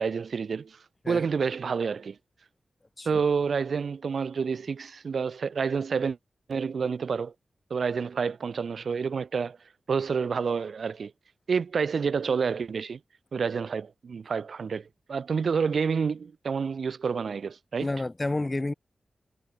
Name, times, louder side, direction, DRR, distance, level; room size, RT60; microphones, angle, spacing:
voice 1, 0.0-2.2 3.1-6.2 6.5-7.3 7.7-9.6 9.9-11.1 11.5-13.0 13.3-17.9, right 5 dB, 70° right, 3.7 m, -28 dB
voice 2, 17.8-18.7, left 2 dB, 25° left, 1.9 m, -30 dB
wide cardioid pair, 115°, 0 cm